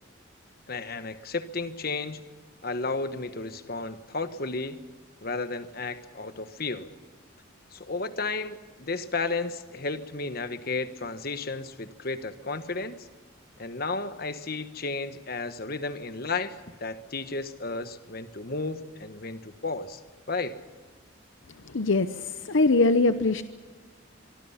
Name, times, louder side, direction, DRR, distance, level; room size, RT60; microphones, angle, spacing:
voice 1, 0.7-2.2 2.6-4.8 5.2-6.9 7.7-13.1 13.6-20.0 20.3-20.6, left 3 dB, 50° left, 10 dB, 1.3 m, -33 dB
voice 2, 21.7-23.4, left 3 dB, 70° left, 10 dB, 0.8 m, -22 dB
24.5 x 24.5 x 5.8 m, 1.4 s
head